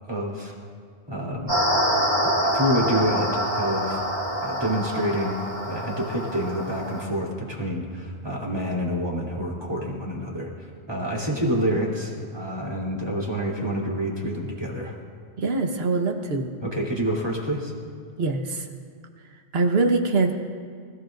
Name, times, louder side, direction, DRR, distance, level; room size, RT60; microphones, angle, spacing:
voice 1, 0.1-0.5 1.1-1.6 2.2-4.0 4.4-5.4 5.7-14.9 16.6-17.7, equal, 20° right, -4 dB, 3.1 m, -27 dB
sound 1, 1.5-7.0, equal, 40° right, 3.3 m, -26 dB
voice 2, 15.4-16.5 18.2-18.7 19.5-20.3, right 3 dB, 65° right, 4 dB, 1.4 m, -23 dB
26.0 x 16.0 x 2.6 m, 2.1 s
omnidirectional pair, 1.1 m